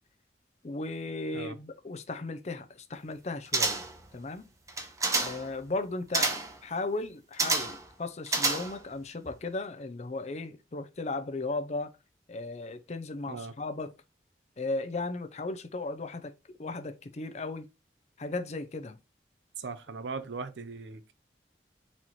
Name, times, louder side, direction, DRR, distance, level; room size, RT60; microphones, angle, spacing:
voice 1, 0.6-3.8 4.1-4.5 5.2-11.9 12.3-13.9 14.6-16.3 16.6-17.7 18.2-19.0, left 3 dB, 40° left, 0.5 m, -36 dB
sound 1, 3.5-4.0 4.7-5.5 6.1-6.6 7.4-7.9 8.3-8.9 9.3-9.4, right 3 dB, 20° right, 0.6 m, -29 dB
voice 2, 19.6-21.1, right 4 dB, 90° right, 0.6 m, -39 dB
4.2 x 3.0 x 4.1 m
head